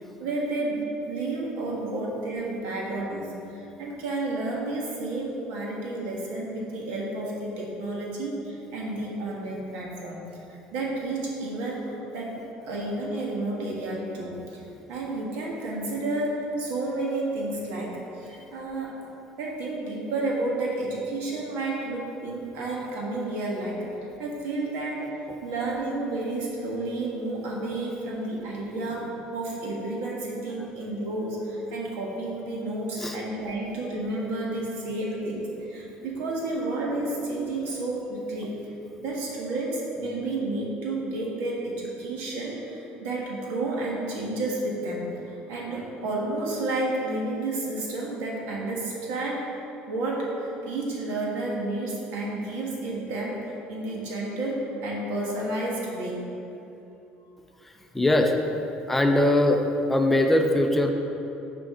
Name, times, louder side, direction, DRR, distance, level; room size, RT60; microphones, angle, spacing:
voice 1, 0.2-0.8 1.1-18.9 19.4-38.7 39.0-49.5 49.9-53.4 53.7-56.2, right 2 dB, 85° right, -3 dB, 1.7 m, -31 dB
voice 2, 57.6-58.3 58.9-59.6 59.9-60.9, left 1 dB, 5° left, 3 dB, 0.4 m, -21 dB
9.2 x 5.1 x 3.8 m, 3.0 s
cardioid pair, 160°, 3 cm